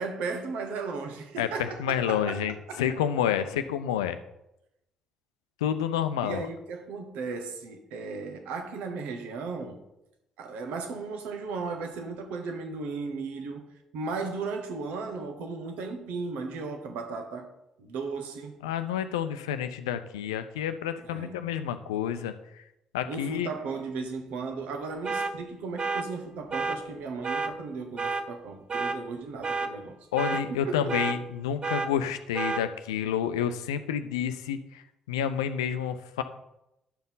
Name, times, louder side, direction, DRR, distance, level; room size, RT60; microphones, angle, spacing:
voice 1, 0.0-2.4 2.7-2.8 6.2-9.8 10.4-17.5 17.8-18.5 21.0-21.5 23.1-30.0 30.3-31.0, right 4 dB, 65° right, 1.3 m, -36 dB
voice 2, 1.4-4.2 5.6-6.5 18.6-22.3 22.9-23.5 30.1-34.8 35.1-36.2, left 9 dB, 75° left, 0.5 m, -29 dB
sound 1, 25.0-25.3 25.8-26.0 26.5-26.8 27.2-27.5 28.0-28.2 28.7-29.0 29.4-29.7 30.2-30.4 30.9-31.2 31.6-31.9 32.3-32.6, right 4 dB, 35° right, 0.8 m, -29 dB
10.5 x 7.1 x 4.0 m
figure-of-eight pair, 45°, 3 cm